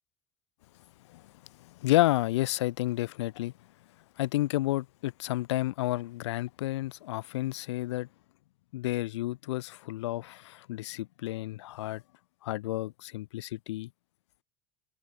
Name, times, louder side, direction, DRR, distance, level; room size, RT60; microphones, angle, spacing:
voice 1, 1.8-3.5 4.2-8.1 8.7-12.0 12.4-13.9, left 16 dB, 70° left, 1.8 m, -30 dB
figure-of-eight pair, 65°, 15 cm